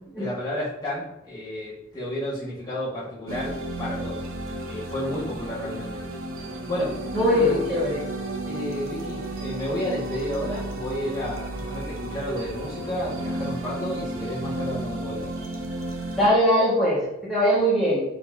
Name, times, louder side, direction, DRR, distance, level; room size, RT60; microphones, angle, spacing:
voice 1, 0.2-4.2 4.6-6.0 6.7-7.0 7.3-7.6 8.4-15.3, left 1 dB, 20° left, -10 dB, 1.6 m, -31 dB
sound 1, 3.3-16.3, right 2 dB, 80° right, 0.8 m, -33 dB
voice 2, 7.1-8.0 16.1-18.0, equal, ahead, -10 dB, 1.6 m, -21 dB
4.3 x 4.2 x 2.7 m, 0.85 s
head